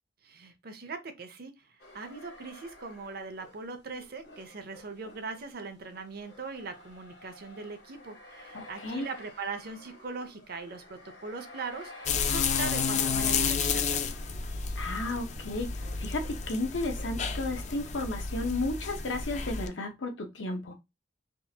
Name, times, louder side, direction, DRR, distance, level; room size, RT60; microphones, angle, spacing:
voice 1, 0.2-14.0, right 4 dB, 55° right, 0.6 m, -40 dB
sound 1, 1.8-17.2, left 1 dB, 65° left, 1.3 m, -52 dB
voice 2, 8.5-9.1 14.8-20.7, left 2 dB, 85° left, 0.8 m, -33 dB
sound 2, 12.1-19.7, left 6 dB, 40° left, 0.4 m, -31 dB
3.7 x 2.4 x 2.8 m
head